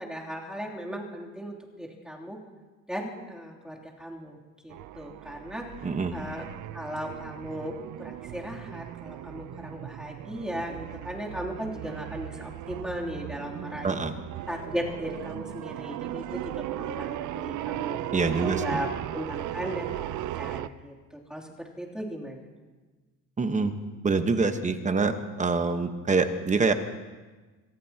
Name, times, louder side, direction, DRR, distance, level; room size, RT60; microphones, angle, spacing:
voice 1, 0.0-2.4 2.9-4.4 4.6-5.7 6.1-6.4 6.7-14.0 14.5-18.0 18.4-18.9 19.1-22.4, equal, ahead, -3 dB, 3.0 m, -37 dB
sound 1, 4.7-20.7, right 13 dB, 65° right, 0.6 m, -37 dB
voice 2, 5.8-6.2 13.8-14.1 18.1-18.8 23.4-23.7 24.0-26.7, right 4 dB, 20° right, 8 dB, 1.2 m, -25 dB
26.5 x 18.5 x 2.9 m, 1.3 s
cardioid pair, 115°, 33 cm